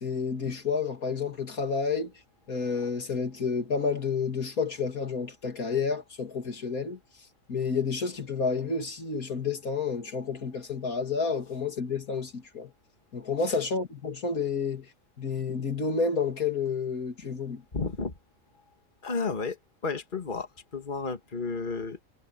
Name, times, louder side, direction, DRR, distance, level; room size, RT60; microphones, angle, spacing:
voice 1, 0.0-2.1 2.5-7.0 7.5-12.7 13.1-14.9 15.2-17.6, left 5 dB, 80° left, 3.0 m, -30 dB
voice 2, 17.7-18.1 19.0-22.0, left 4 dB, 35° left, 2.1 m, -32 dB
omnidirectional pair, 1.5 m